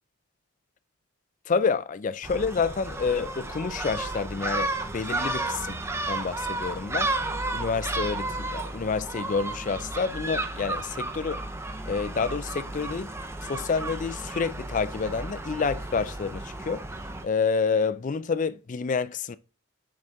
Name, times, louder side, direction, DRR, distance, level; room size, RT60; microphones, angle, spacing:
voice 1, 1.5-5.8 6.1-7.1 7.5-11.4 11.9-13.1 13.4-16.8 17.2-19.4, left 5 dB, 35° left, 0.4 m, -28 dB
Gull seagull, 2.2-17.2, right 2 dB, 10° right, 0.5 m, -33 dB
6.2 x 5.9 x 3.5 m
head